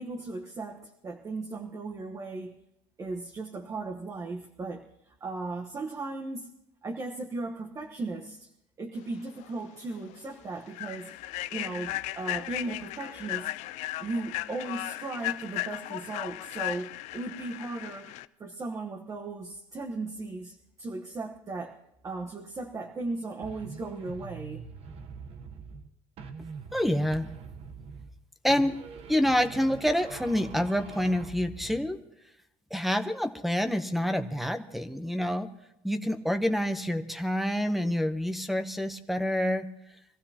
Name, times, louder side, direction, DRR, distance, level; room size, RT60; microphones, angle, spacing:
voice 1, 0.0-2.5 3.0-6.5 6.8-8.5 8.8-11.1 11.5-13.6 14.0-18.1 18.4-21.8 22.0-24.6, right 3 dB, 25° right, 2 dB, 1.2 m, -37 dB
Human voice / Train, 9.4-9.5 10.0-10.1 10.7-18.2, left 17 dB, 70° left, 0.4 m, -36 dB
sound 1, 23.4-25.9 26.2-28.2 28.5-31.9, right 6 dB, 50° right, 1.0 m, -44 dB
voice 2, 26.7-27.3 28.4-28.7 29.1-32.0 32.7-35.5 35.8-39.7, equal, ahead, 6 dB, 0.8 m, -27 dB
24.0 x 15.0 x 2.9 m, 0.82 s
cardioid pair, 125°, 13 cm